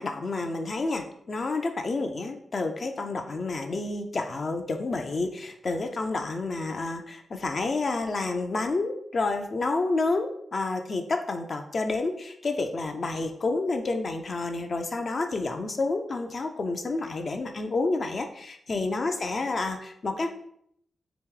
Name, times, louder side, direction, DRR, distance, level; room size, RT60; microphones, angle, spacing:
voice 1, 0.0-20.3, left 3 dB, 40° left, 5 dB, 0.4 m, -29 dB
3.5 x 2.9 x 3.7 m, 0.69 s
wide cardioid pair, 145°, 0 cm